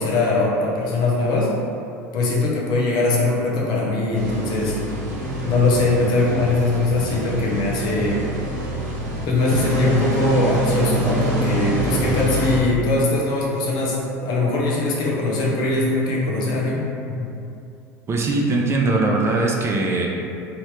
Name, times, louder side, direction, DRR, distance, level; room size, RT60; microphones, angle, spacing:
voice 1, 0.0-1.5 2.1-4.8 5.4-8.3 9.2-16.9 17.2-17.3, left 2 dB, 55° left, -4 dB, 0.8 m, -21 dB
sound 1, 4.1-12.6, right 1 dB, 85° right, 0.7 m, -25 dB
voice 2, 18.1-20.1, right 2 dB, 30° right, -1 dB, 0.5 m, -20 dB
3.0 x 2.8 x 3.2 m, 2.6 s
hypercardioid pair, 75°, 9 cm